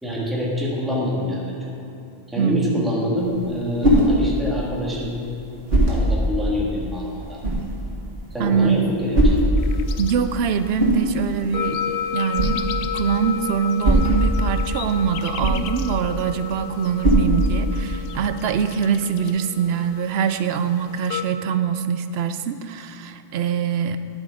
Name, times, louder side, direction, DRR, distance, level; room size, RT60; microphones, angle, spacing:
voice 1, 0.0-1.6 2.3-5.1 5.9-7.4 8.3-9.4, left 1 dB, ahead, -5 dB, 1.7 m, -26 dB
voice 2, 2.4-2.9 8.4-8.9 10.0-12.6 12.9-24.0, right 7 dB, 80° right, 10 dB, 0.8 m, -23 dB
sound 1, 3.2-18.1, equal, 55° right, 1.7 m, -23 dB
sound 2, 9.6-21.2, left 8 dB, 65° left, 0.7 m, -33 dB
9.9 x 7.7 x 4.9 m, 2.5 s
omnidirectional pair, 1.1 m